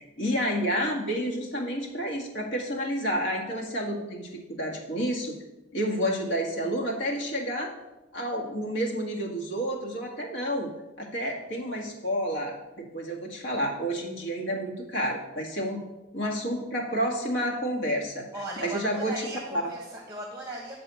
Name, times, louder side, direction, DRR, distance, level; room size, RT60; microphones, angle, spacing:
voice 1, 0.0-5.3 5.7-7.7 8.1-10.7 11.0-15.8 16.1-18.3 18.6-19.7, equal, 80° left, -2 dB, 1.7 m, -30 dB
voice 2, 18.3-20.8, right 1 dB, 15° right, 0 dB, 1.0 m, -38 dB
9.0 x 3.9 x 6.9 m, 1.1 s
head